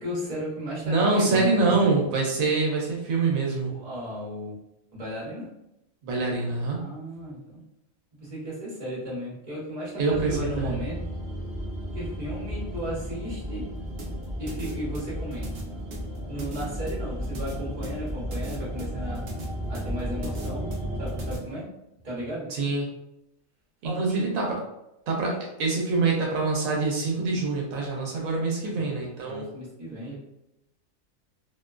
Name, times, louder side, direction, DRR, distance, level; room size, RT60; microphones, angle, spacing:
voice 1, 0.0-1.9 3.7-4.5 4.9-5.5 6.8-7.6 8.2-11.0 11.9-13.7 14.4-15.5 16.3-19.2 19.7-20.7 21.0-21.6 22.0-22.5 23.8-24.3 25.2-25.3 28.4-28.8 29.2-30.1, equal, 35° right, -7 dB, 1.0 m, -35 dB
voice 2, 0.9-3.7 6.0-6.8 10.0-10.7 22.5-22.9 23.8-24.6 25.1-25.3 25.6-29.5, right 3 dB, 85° right, -1 dB, 1.0 m, -25 dB
sound 1, 10.1-21.4, equal, ahead, 0.9 m, -34 dB
sound 2, 14.0-21.4, right 2 dB, 60° right, 0.7 m, -41 dB
2.6 x 2.1 x 2.3 m, 0.86 s
omnidirectional pair, 1.4 m